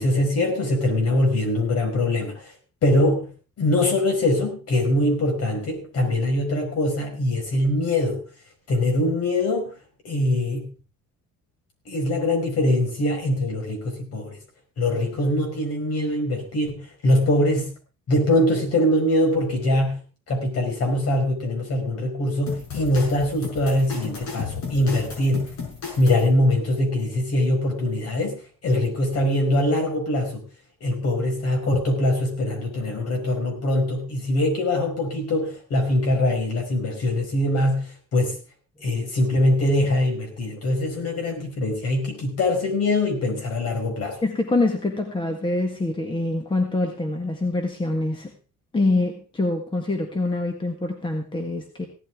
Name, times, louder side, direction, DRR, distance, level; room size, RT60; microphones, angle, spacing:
voice 1, 0.0-2.4 2.8-3.3 3.6-8.2 8.7-9.7 10.0-10.7 11.9-14.4 14.8-17.7 18.1-20.0 20.3-25.6 26.0-30.5 30.8-38.4 38.8-44.2, left 1 dB, 55° left, 3 dB, 5.2 m, -23 dB
sound 1, 22.5-26.3, left 5 dB, 70° left, 6.0 m, -34 dB
voice 2, 44.2-48.3 48.7-51.9, left 2 dB, 15° left, 4 dB, 1.7 m, -25 dB
17.0 x 12.5 x 3.6 m, 0.35 s
cardioid pair, 160°, 30 cm